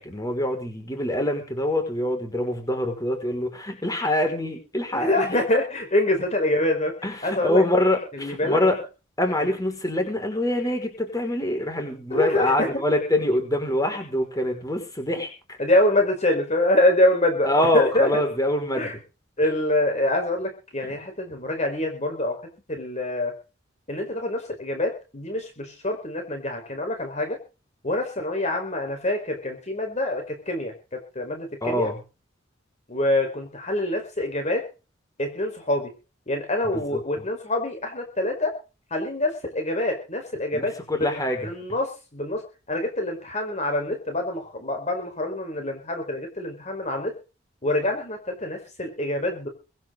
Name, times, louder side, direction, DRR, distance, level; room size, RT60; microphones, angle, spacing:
voice 1, 0.0-5.4 7.0-8.8 9.2-15.6 17.4-18.9 20.8-20.9 31.6-32.0 36.9-37.0 40.5-41.5, left 1 dB, 20° left, 4 dB, 5.7 m, -25 dB
voice 2, 4.9-6.9 7.2-7.6 8.2-8.6 12.1-12.7 15.6-18.1 18.8-18.9 19.4-22.4 22.7-23.3 23.9-27.4 27.8-31.9 32.9-34.6 35.2-35.9 36.3-38.5 38.9-40.7 41.4-42.4 42.7-47.1 47.6-49.5, left 1 dB, 35° left, 4 dB, 4.8 m, -25 dB
24.5 x 10.5 x 4.0 m, 0.34 s
head